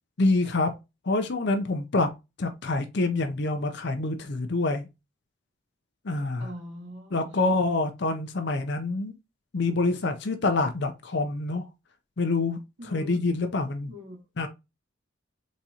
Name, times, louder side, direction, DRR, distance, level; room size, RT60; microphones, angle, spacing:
voice 1, 0.2-0.7 1.0-2.1 2.4-4.9 6.0-6.5 7.1-9.1 9.5-11.7 12.2-13.9 14.4-14.5, left 3 dB, 55° left, 0.6 m, -26 dB
voice 2, 6.4-7.6 12.8-13.2 13.9-14.2, left 1 dB, 65° right, 2.1 m, -42 dB
4.1 x 3.6 x 2.8 m
head